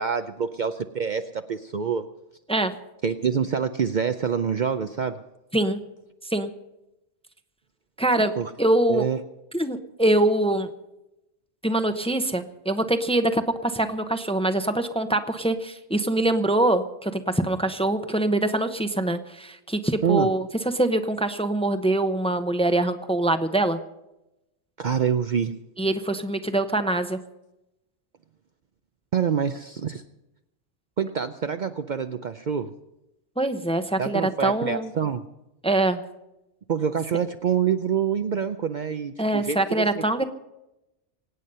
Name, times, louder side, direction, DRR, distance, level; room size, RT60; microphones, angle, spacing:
voice 1, 0.0-2.1 3.0-5.2 8.4-8.5 8.9-9.2 20.0-20.3 24.8-25.6 29.1-30.0 31.0-32.7 34.0-35.3 36.7-40.2, right 7 dB, 50° right, 8 dB, 0.7 m, -26 dB
voice 2, 8.0-8.3 8.6-9.1 9.5-10.7 11.6-20.4 20.7-23.8 25.8-27.2 33.4-34.9 35.6-36.0 39.2-40.2, right 1 dB, 5° left, 8 dB, 0.8 m, -24 dB
24.5 x 9.3 x 5.5 m, 0.91 s
omnidirectional pair, 1.1 m